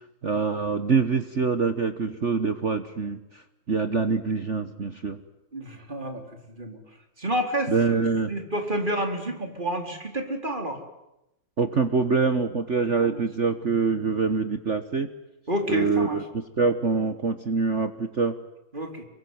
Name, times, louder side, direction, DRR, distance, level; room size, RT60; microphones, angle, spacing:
voice 1, 0.2-3.4 3.7-5.2 7.7-8.3 11.6-15.1 15.7-16.2 16.6-18.3, right 4 dB, 40° right, 9 dB, 1.4 m, -25 dB
voice 2, 5.5-6.2 6.6-6.8 7.2-10.8 13.0-13.2 15.5-16.2 18.7-19.0, equal, 20° right, 4 dB, 4.2 m, -29 dB
27.0 x 23.5 x 9.4 m, 0.88 s
omnidirectional pair, 2.3 m